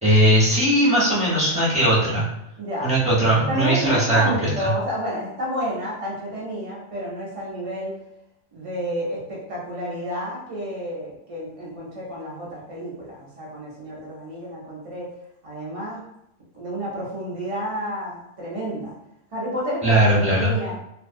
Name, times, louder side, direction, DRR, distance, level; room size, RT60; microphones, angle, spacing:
voice 1, 0.0-2.3 2.8-4.7 19.8-20.5, right 1 dB, 5° right, -9 dB, 0.6 m, -19 dB
voice 2, 2.6-2.9 3.5-8.0 8.5-15.1 15.4-16.0 16.5-19.0 19.3-20.0 20.3-20.7, equal, 55° right, -6 dB, 0.3 m, -30 dB
2.5 x 2.2 x 2.6 m, 0.82 s
omnidirectional pair, 1.7 m